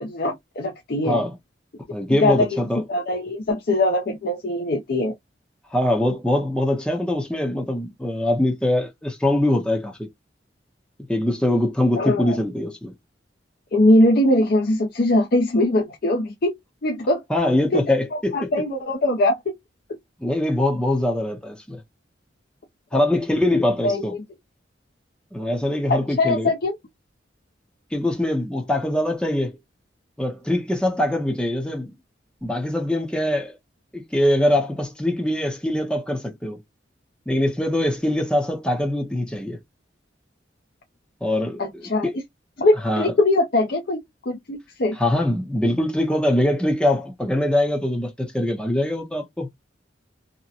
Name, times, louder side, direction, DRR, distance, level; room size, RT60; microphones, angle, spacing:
voice 1, 0.0-1.2 2.1-2.6 2.9-5.1 12.0-12.4 13.7-16.5 16.8-17.2 17.7-19.4 23.8-24.0 25.9-26.8 41.6-42.2 42.6-45.0, left 1 dB, 55° left, 0.5 m, -21 dB
voice 2, 1.1-1.4 1.9-2.8 5.7-10.1 11.1-12.9 17.3-18.5 20.2-21.8 22.9-24.1 25.3-26.5 27.9-29.6 30.2-31.9 32.4-33.6 33.9-36.6 37.3-39.6 41.2-42.1 42.8-43.1 44.9-49.5, left 1 dB, 5° left, 0.6 m, -23 dB
2.8 x 2.1 x 2.4 m
head